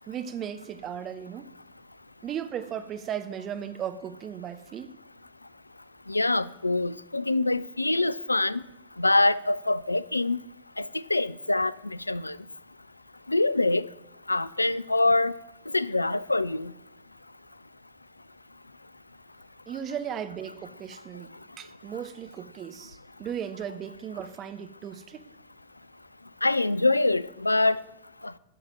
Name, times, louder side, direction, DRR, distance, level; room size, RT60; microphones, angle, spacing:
voice 1, 0.1-1.5 2.2-4.9 19.7-21.3 21.6-25.3, right 9 dB, 30° right, 0.8 m, -36 dB
voice 2, 6.1-8.6 9.0-10.4 10.8-11.7 12.1-12.4 13.3-13.9 14.3-15.3 15.7-16.7 26.4-27.8 28.2-28.3, left 2 dB, 85° left, 0.3 m, -24 dB
9.3 x 6.8 x 8.9 m
figure-of-eight pair, 90°, 0 cm